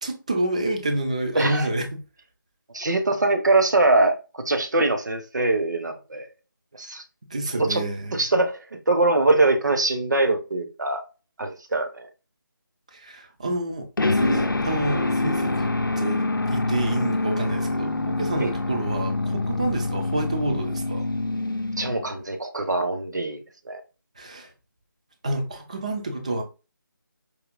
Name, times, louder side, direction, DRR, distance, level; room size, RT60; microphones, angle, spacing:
voice 1, 0.0-2.0 7.3-8.2 12.9-21.1 24.2-24.5 25.2-26.4, right 2 dB, 20° right, 0.4 m, -28 dB
voice 2, 1.3-1.7 2.7-6.3 6.8-7.0 7.5-7.8 8.1-11.0 11.4-12.1 18.4-18.5 21.8-23.4 23.6-23.8, right 2 dB, 60° right, 0.8 m, -23 dB
sound 1, 14.0-22.2, left 2 dB, 70° left, 0.5 m, -26 dB
4.7 x 2.8 x 2.4 m
figure-of-eight pair, 160°, 11 cm